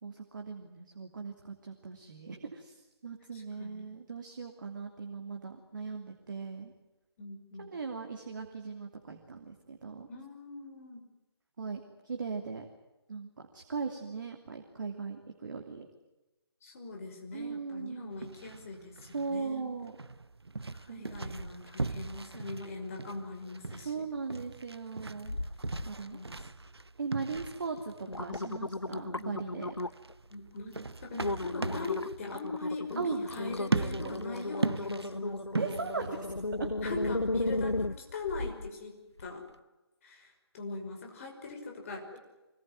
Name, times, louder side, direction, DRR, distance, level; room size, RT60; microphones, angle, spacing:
voice 1, 0.0-6.7 7.6-10.1 11.6-12.7 13.1-15.9 17.3-18.2 19.1-19.9 20.9-21.1 23.8-25.4 25.8-26.2 27.0-29.7 33.0-33.2 35.6-36.3 36.6-36.7, right 4 dB, 50° right, 4 dB, 2.9 m, -39 dB
voice 2, 3.3-3.9 7.2-7.7 10.1-11.0 16.6-19.7 20.7-24.0 26.1-26.4 30.3-35.4 36.8-39.4 40.0-42.2, left 3 dB, 35° left, 2 dB, 5.7 m, -41 dB
sound 1, 18.1-36.0, right 3 dB, 75° right, 0.9 m, -39 dB
sound 2, 25.2-25.9 26.3-26.8 27.3-27.5 27.9-30.1 30.6-30.8 31.2-38.7 39.2-39.3, left 2 dB, 85° left, 1.0 m, -35 dB
25.0 x 20.0 x 9.5 m, 1.0 s
figure-of-eight pair, 145°, 14 cm